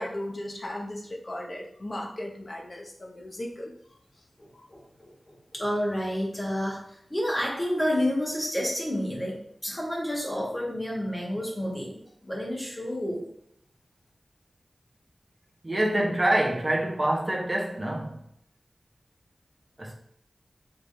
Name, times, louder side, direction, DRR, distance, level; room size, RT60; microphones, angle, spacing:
voice 1, 0.0-3.8 4.5-4.6, left 1 dB, 45° left, 0.8 m, -36 dB
voice 2, 4.4-13.3, equal, 20° left, 1.7 m, -30 dB
voice 3, 15.6-18.2 19.8-19.9, right 1 dB, 30° right, 0.9 m, -26 dB
4.9 x 3.4 x 2.7 m
wide cardioid pair, 60°, 0 cm